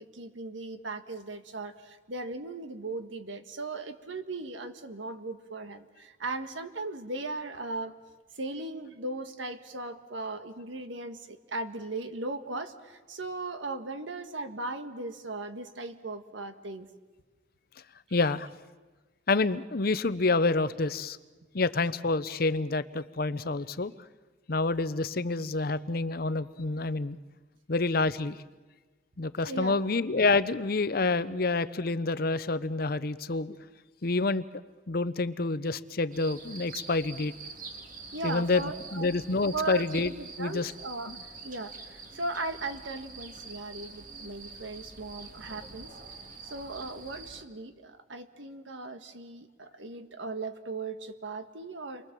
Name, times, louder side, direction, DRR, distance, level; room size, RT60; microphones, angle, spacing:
voice 1, 0.0-7.9 8.3-16.9 29.4-29.9 38.1-39.1 39.5-41.2 41.4-45.9 46.4-52.1, right 2 dB, 85° right, 8 dB, 1.6 m, -38 dB
voice 2, 18.1-18.5 19.3-21.2 21.5-23.9 24.5-27.2 27.7-28.4 29.2-33.5 34.0-34.4 34.9-37.3 38.2-38.6 38.9-40.1 40.4-40.7 41.1-41.2, left 3 dB, 50° left, 14 dB, 0.7 m, -28 dB
sound 1, 36.1-47.4, right 3 dB, 45° right, 2.1 m, -46 dB
29.5 x 23.0 x 7.5 m, 1.3 s
head